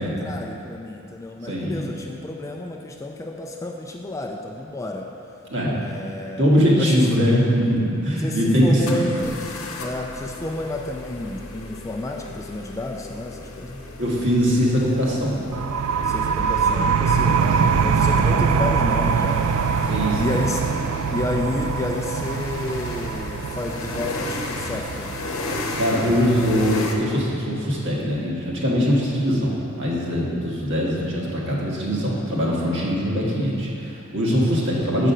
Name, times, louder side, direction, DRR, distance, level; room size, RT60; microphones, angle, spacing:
voice 1, 0.0-5.1 5.7-6.5 6.8-7.0 8.2-9.4 9.8-13.8 16.0-19.9 20.2-20.6 21.1-25.1, left 1 dB, 15° left, 1 dB, 0.3 m, -30 dB
voice 2, 1.4-1.8 5.5-5.8 6.4-9.1 14.0-15.4 19.9-20.5 25.5-35.1, equal, 55° right, -5 dB, 1.5 m, -22 dB
sound 1, 7.7-7.8 8.9-27.0, left 2 dB, 70° left, 0.8 m, -35 dB
sound 2, 15.5-26.9, right 6 dB, 80° right, 0.3 m, -23 dB
7.8 x 5.0 x 5.5 m, 2.7 s
head